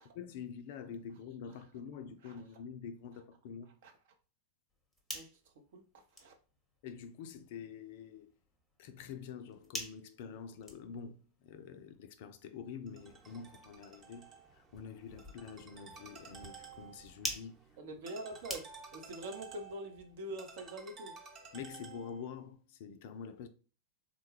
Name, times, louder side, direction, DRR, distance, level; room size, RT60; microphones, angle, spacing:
voice 1, 0.2-3.7 6.8-8.3 8.8-17.6 21.5-23.5, left 6 dB, 50° left, 0.3 m, -47 dB
sound 1, 4.7-19.1, equal, 5° left, 0.8 m, -49 dB
Ringtone, 12.9-22.4, right 5 dB, 30° right, 0.9 m, -53 dB
voice 2, 17.8-21.1, right 1 dB, 55° right, 0.7 m, -44 dB
3.6 x 2.2 x 3.2 m
figure-of-eight pair, 90°, 0 cm